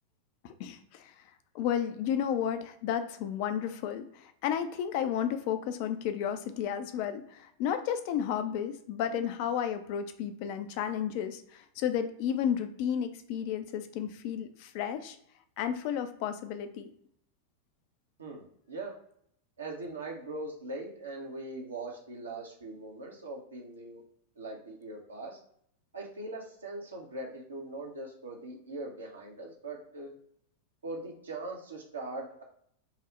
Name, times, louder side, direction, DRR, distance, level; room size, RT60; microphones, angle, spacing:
voice 1, 0.4-1.1 1.5-15.2 15.6-16.9, left 9 dB, 45° left, 9 dB, 0.4 m, -32 dB
voice 2, 18.2-18.9 19.6-24.0 24.4-25.4 25.9-30.1 30.8-32.4, right 2 dB, 75° right, -1 dB, 0.6 m, -41 dB
2.8 x 2.0 x 3.8 m, 0.67 s
figure-of-eight pair, 90°, 0 cm